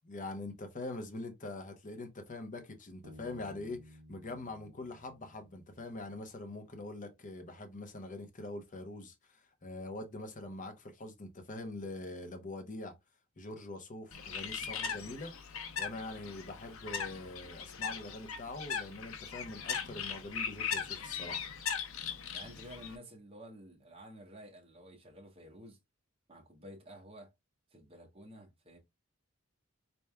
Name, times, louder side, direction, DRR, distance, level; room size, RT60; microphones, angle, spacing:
voice 1, 0.0-12.9 13.4-15.3 15.8-21.5, left 2 dB, 40° left, 0.8 m, -44 dB
Bass guitar, 3.0-6.6, equal, 85° right, 0.7 m, -57 dB
Bird, 14.1-23.0, left 7 dB, 75° left, 0.7 m, -39 dB
voice 2, 22.3-25.8 26.3-27.3 27.7-28.8, equal, 25° right, 1.1 m, -51 dB
4.2 x 3.3 x 2.3 m
head